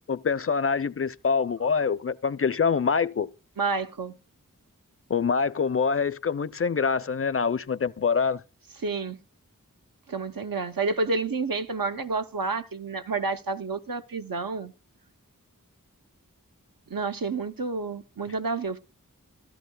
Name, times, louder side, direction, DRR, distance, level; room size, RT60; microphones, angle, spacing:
voice 1, 0.1-3.3 5.1-8.4, left 5 dB, 40° left, 0.5 m, -25 dB
voice 2, 3.6-4.2 8.8-9.2 10.1-14.7 16.9-18.8, right 4 dB, 85° right, 0.8 m, -29 dB
16.0 x 13.0 x 2.2 m
wide cardioid pair, 50°, 33 cm